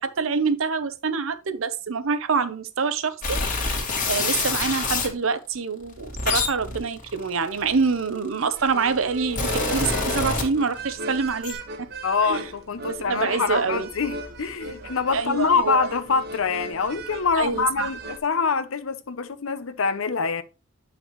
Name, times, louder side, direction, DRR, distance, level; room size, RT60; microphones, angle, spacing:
voice 1, 0.0-3.4 4.1-11.6 12.2-12.4 12.9-13.9 15.1-15.9 17.3-17.9, right 5 dB, 75° right, 0.8 m, -26 dB
sound 1, 3.2-5.1 5.9-8.2 8.9-10.9 11.2-11.5, left 3 dB, 40° left, 1.9 m, -26 dB
sound 2, 8.5-18.2, right 2 dB, 50° right, 1.1 m, -37 dB
voice 2, 12.0-20.4, left 5 dB, 75° left, 0.7 m, -25 dB
9.0 x 5.9 x 3.1 m
head